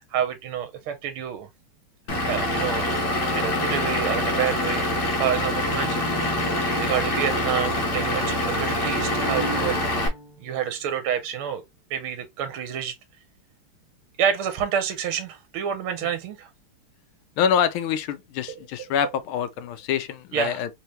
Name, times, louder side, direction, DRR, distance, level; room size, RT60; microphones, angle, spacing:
voice 1, 0.0-1.5 2.3-3.1 3.3-4.9 5.2-6.1 6.8-9.8 10.4-11.6 11.9-12.9 14.2-16.5 18.5-18.6 20.3-20.6, right 9 dB, 80° right, 1.6 m, -28 dB
Vehicle / Engine, 2.1-10.1, left 1 dB, 60° left, 1.5 m, -25 dB
Bowed string instrument, 5.9-10.9, right 1 dB, 60° right, 1.2 m, -37 dB
voice 2, 17.4-20.7, left 8 dB, 80° left, 1.4 m, -25 dB
3.8 x 2.8 x 3.1 m
omnidirectional pair, 2.4 m